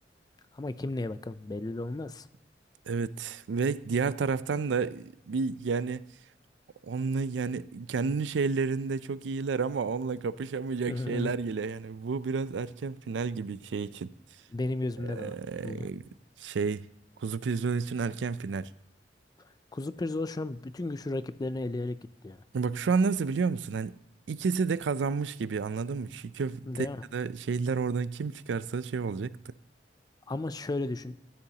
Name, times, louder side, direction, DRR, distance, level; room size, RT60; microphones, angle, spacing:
voice 1, 0.5-2.3 10.9-11.3 14.5-15.3 15.6-15.9 19.7-22.0 22.2-22.4 26.7-27.0 30.3-31.2, left 2 dB, 20° left, 0.4 m, -34 dB
voice 2, 2.9-6.1 6.8-14.1 15.0-16.0 16.4-16.9 17.2-18.7 22.5-24.0 24.3-26.9 27.1-29.5, right 5 dB, 85° right, 0.4 m, -30 dB
14.0 x 10.0 x 2.8 m
head